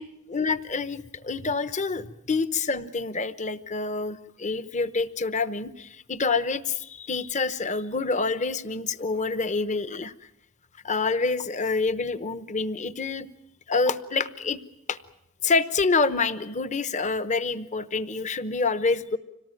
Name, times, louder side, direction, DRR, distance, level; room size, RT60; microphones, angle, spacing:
voice 1, 0.3-10.1 10.8-13.3 13.7-14.6 14.9-15.0 15.4-19.2, left 4 dB, 35° left, 13 dB, 0.9 m, -27 dB
26.0 x 18.5 x 9.1 m, 0.84 s
head